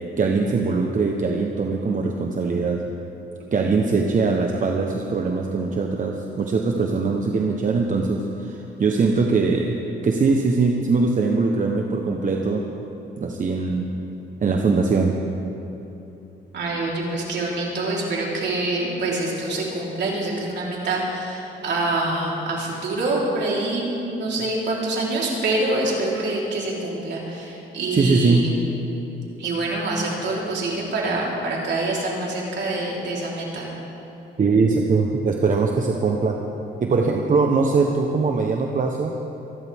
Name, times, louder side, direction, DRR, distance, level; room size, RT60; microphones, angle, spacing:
voice 1, 0.2-2.8 3.5-9.7 10.0-12.6 13.2-13.9 14.4-15.2 24.4-24.5 27.9-28.4 34.4-36.4 36.8-39.1, right 4 dB, 40° right, 2 dB, 1.1 m, -21 dB
voice 2, 16.5-28.5 29.4-33.7, right 2 dB, 60° right, -4 dB, 4.0 m, -25 dB
26.5 x 11.5 x 3.7 m, 2.9 s
cardioid pair, 90°, 20 cm